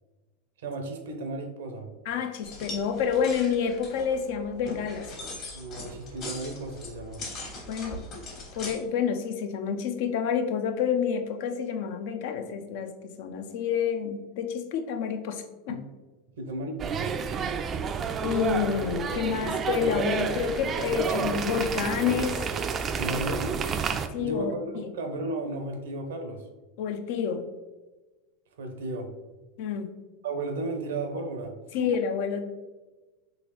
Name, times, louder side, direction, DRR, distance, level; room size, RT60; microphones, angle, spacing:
voice 1, 0.6-1.9 5.5-7.2 15.7-15.8 16.3-17.1 23.0-23.6 24.2-26.5 28.6-29.1 30.2-31.9, right 2 dB, 75° right, 4 dB, 0.6 m, -34 dB
voice 2, 2.1-5.1 7.7-8.2 8.5-15.8 18.2-22.4 24.1-24.9 26.8-27.5 29.6-29.9 31.7-32.4, left 7 dB, 65° left, 7 dB, 0.4 m, -29 dB
sound 1, 2.4-8.7, left 2 dB, 45° left, 1.4 m, -40 dB
sound 2, 16.8-24.1, right 6 dB, 30° right, 0.3 m, -30 dB
3.8 x 2.9 x 3.0 m, 1.2 s
hypercardioid pair, 95°, 0 cm